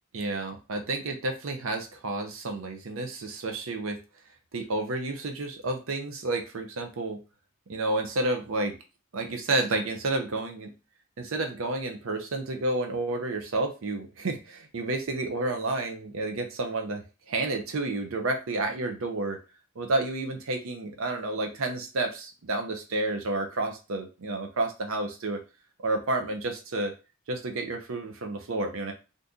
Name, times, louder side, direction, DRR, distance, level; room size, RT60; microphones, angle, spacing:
voice 1, 0.1-4.0 4.5-7.2 7.7-8.7 9.1-10.7 11.2-19.4 19.8-25.4 25.8-26.9 27.3-28.9, right 2 dB, 80° right, 5 dB, 0.6 m, -30 dB
2.6 x 2.6 x 3.5 m, 0.31 s
head